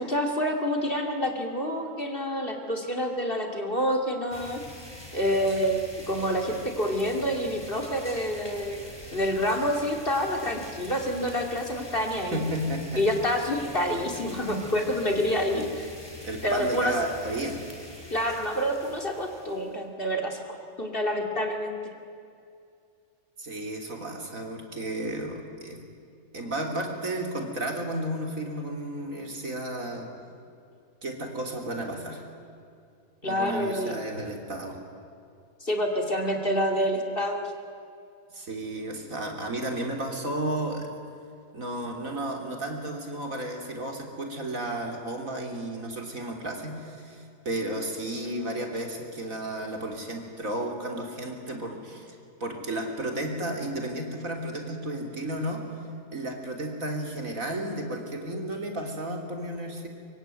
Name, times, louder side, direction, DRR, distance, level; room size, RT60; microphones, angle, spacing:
voice 1, 0.0-4.6 5.1-8.8 9.1-12.4 13.0-15.8 16.4-16.9 18.1-21.7 33.2-34.0 35.6-37.5, equal, 35° left, 3 dB, 2.7 m, -27 dB
sound 1, 4.3-19.8, left 1 dB, 15° left, 4.3 m, -45 dB
voice 2, 12.3-13.0 15.5-15.7 16.2-17.6 23.4-25.8 26.3-30.1 31.0-32.3 33.2-34.8 38.3-40.9 41.5-55.8 56.1-59.9, right 1 dB, 60° right, 2 dB, 3.7 m, -33 dB
24.5 x 24.0 x 9.3 m, 2.4 s
omnidirectional pair, 1.6 m